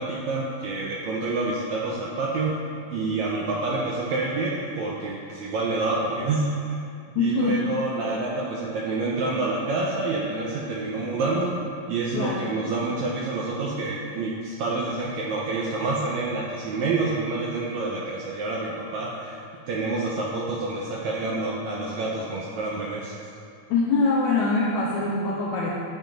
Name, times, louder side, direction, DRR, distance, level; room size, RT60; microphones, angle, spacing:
voice 1, 0.0-2.6 2.9-6.5 7.2-11.6 11.9-23.2, right 3 dB, 80° right, -4 dB, 1.6 m, -28 dB
voice 2, 7.1-7.6 12.1-12.6 23.7-25.7, left 3 dB, 80° left, -4 dB, 1.7 m, -24 dB
10.0 x 7.5 x 2.5 m, 2.4 s
omnidirectional pair, 4.0 m